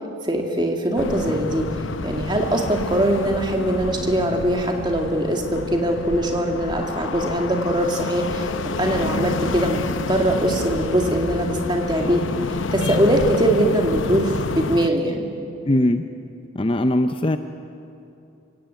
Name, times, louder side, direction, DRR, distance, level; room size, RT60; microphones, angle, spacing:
voice 1, 0.2-1.6 2.0-8.5 8.8-12.2 12.7-15.3, right 1 dB, 25° right, 2 dB, 2.3 m, -22 dB
sound 1, 1.0-14.9, left 3 dB, 75° left, 0.8 m, -29 dB
voice 2, 15.7-16.1 16.5-17.4, left 1 dB, 25° left, 8 dB, 0.6 m, -20 dB
27.0 x 17.0 x 8.3 m, 2.7 s
head